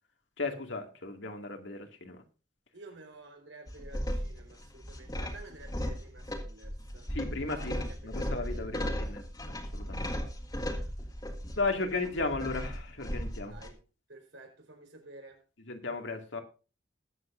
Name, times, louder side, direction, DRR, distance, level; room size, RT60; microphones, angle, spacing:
voice 1, 0.4-2.2 7.1-10.1 11.6-13.6 15.7-16.4, left 3 dB, 75° left, 2.2 m, -35 dB
voice 2, 2.7-7.1 7.4-8.9 13.4-13.8 14.1-15.4, right 2 dB, 85° right, 4.4 m, -51 dB
sound 1, 3.7-13.7, equal, 20° left, 1.8 m, -36 dB
20.5 x 8.2 x 2.6 m
head